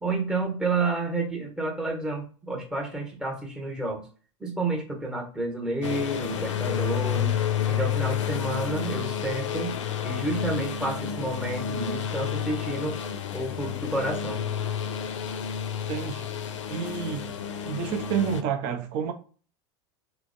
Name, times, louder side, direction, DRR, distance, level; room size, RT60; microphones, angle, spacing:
voice 1, 0.0-4.0 4.4-7.4 7.7-9.7 10.0-13.0 13.3-14.4, right 2 dB, 5° right, 0.9 m, -30 dB
sound 1, 5.8-18.4, left 8 dB, 80° left, 0.4 m, -30 dB
voice 2, 15.9-16.3 16.7-17.3 17.6-19.1, right 7 dB, 50° right, 0.7 m, -29 dB
3.2 x 2.1 x 2.6 m
hypercardioid pair, 90°, 16 cm